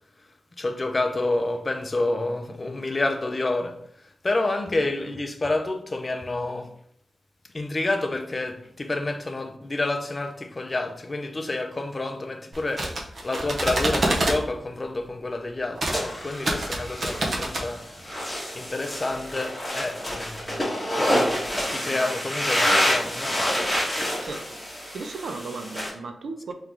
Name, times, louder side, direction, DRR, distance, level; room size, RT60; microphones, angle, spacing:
voice 1, 0.6-3.8 4.0-6.7 7.5-17.8 18.5-20.7 21.0-21.4 21.7-23.4, left 2 dB, 30° left, 0.5 m, -29 dB
sound 1, 12.5-14.4 15.8-16.0 16.3-17.7, right 1 dB, 50° right, 0.8 m, -26 dB
sound 2, 15.9-25.9, equal, 5° left, 1.4 m, -27 dB
voice 2, 24.9-26.5, right 3 dB, 90° right, 0.5 m, -35 dB
3.6 x 3.1 x 3.5 m
wide cardioid pair, 110°, 0 cm